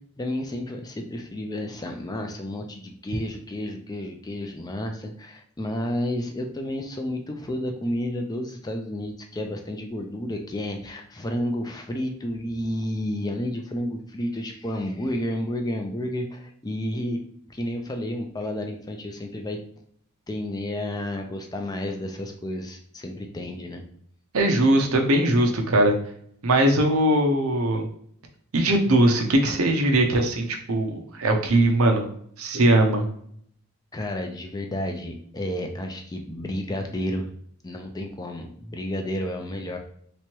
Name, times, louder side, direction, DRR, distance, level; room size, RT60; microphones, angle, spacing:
voice 1, 0.2-17.2 17.5-19.6 20.3-23.8 33.9-37.3 37.6-39.8, left 1 dB, 15° left, 3 dB, 0.4 m, -31 dB
voice 2, 24.3-26.0 26.4-27.9 28.5-32.1 32.4-33.1, right 1 dB, 75° right, 3 dB, 0.7 m, -20 dB
3.4 x 3.0 x 2.9 m, 0.65 s
head